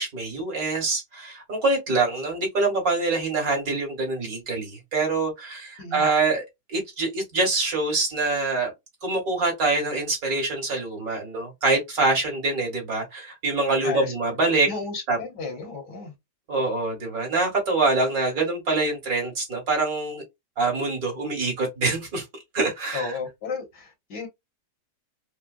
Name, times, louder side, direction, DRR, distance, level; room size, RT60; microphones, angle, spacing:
voice 1, 0.0-6.4 6.7-8.7 9.0-14.7 15.1-15.2 16.5-20.2 20.6-22.3 22.5-23.1, right 3 dB, 55° right, 2.4 m, -25 dB
voice 2, 13.8-14.1 14.7-16.1 22.9-24.3, left 4 dB, 75° left, 2.0 m, -33 dB
4.9 x 2.2 x 2.3 m
omnidirectional pair, 1.9 m